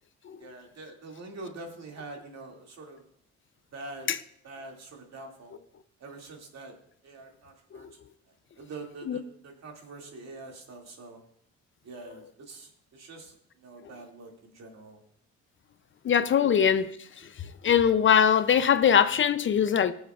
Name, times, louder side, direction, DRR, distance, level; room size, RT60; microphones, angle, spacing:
voice 1, 0.4-3.0 3.7-4.1 4.4-5.6 6.0-6.7 7.0-11.2 11.8-15.0 17.2-17.3, right 2 dB, 60° right, 1 dB, 2.4 m, -45 dB
voice 2, 16.0-16.9 17.2-17.3 17.6-19.9, left 8 dB, 40° left, 13 dB, 0.5 m, -22 dB
21.0 x 7.1 x 2.4 m, 0.68 s
cardioid pair, 90°, 30 cm